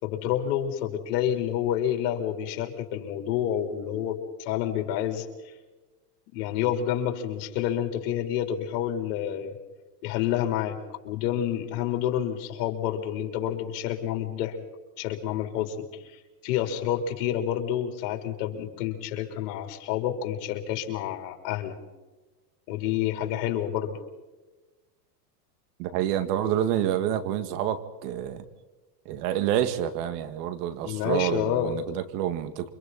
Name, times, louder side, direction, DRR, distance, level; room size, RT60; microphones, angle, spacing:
voice 1, 0.0-5.3 6.3-9.6 10.0-10.8 11.0-14.6 15.0-21.8 22.7-24.0 30.8-31.8, left 10 dB, 65° left, 4 dB, 4.1 m, -29 dB
voice 2, 25.8-28.4 29.1-32.7, right 10 dB, 65° right, 11 dB, 2.3 m, -28 dB
29.0 x 25.5 x 4.3 m, 1.2 s
supercardioid pair, 115°, 49 cm